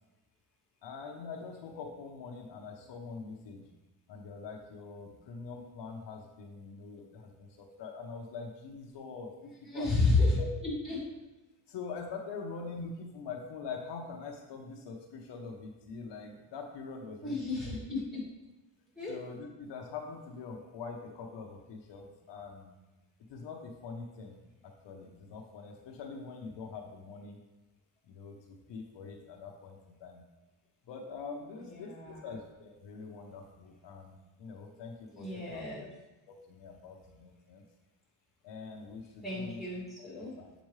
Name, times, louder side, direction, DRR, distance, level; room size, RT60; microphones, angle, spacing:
voice 1, 0.8-3.7 4.1-10.1 10.4-10.5 11.7-17.7 19.1-22.7 23.3-24.4 24.6-27.4 28.0-30.3 30.9-35.9 36.3-37.6 38.4-39.7 40.0-40.5, left 4 dB, 70° left, 1 dB, 0.9 m, -44 dB
voice 2, 9.6-10.4 10.6-11.0 17.2-18.2 19.0-19.2 31.9-32.2 35.1-35.9 39.2-40.3, left 3 dB, ahead, -8 dB, 2.1 m, -31 dB
7.3 x 5.1 x 3.2 m, 1.1 s
cardioid pair, 170°, 45 cm